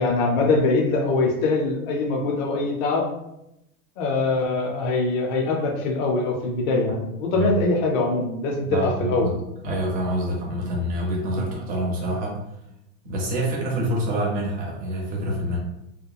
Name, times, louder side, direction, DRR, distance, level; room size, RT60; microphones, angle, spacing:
voice 1, 0.0-3.0 4.0-9.3, left 3 dB, 35° left, 0 dB, 0.4 m, -23 dB
voice 2, 8.7-9.3 9.6-12.4 13.0-15.6, right 1 dB, 20° right, -1 dB, 0.5 m, -26 dB
2.9 x 2.2 x 2.3 m, 0.85 s
supercardioid pair, 145°, 42 cm